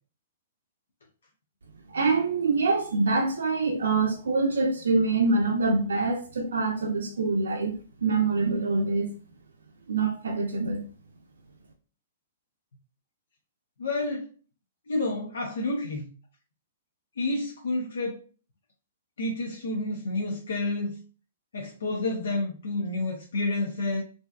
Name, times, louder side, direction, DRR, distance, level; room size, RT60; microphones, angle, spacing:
voice 1, 1.9-9.1 9.9-10.8, right 3 dB, 80° right, 0.4 m, -25 dB
voice 2, 13.8-14.3 14.9-16.1 17.2-18.2 19.2-20.9 21.5-24.0, left 2 dB, 80° left, 0.5 m, -29 dB
2.5 x 2.3 x 2.2 m
hypercardioid pair, 125°, 0 cm